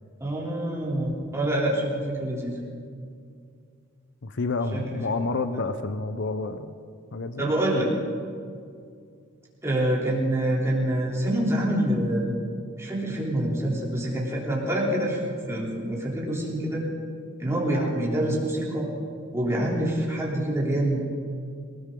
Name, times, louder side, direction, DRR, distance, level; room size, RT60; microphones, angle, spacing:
voice 1, 0.2-2.6 4.7-5.0 7.4-7.9 9.6-12.3 12.8-16.8 17.4-18.9 19.3-21.0, right 1 dB, 15° right, -4 dB, 3.3 m, -26 dB
voice 2, 4.2-6.7 7.1-7.5, left 3 dB, 60° left, 10 dB, 0.7 m, -29 dB
19.5 x 19.5 x 3.8 m, 2.2 s
head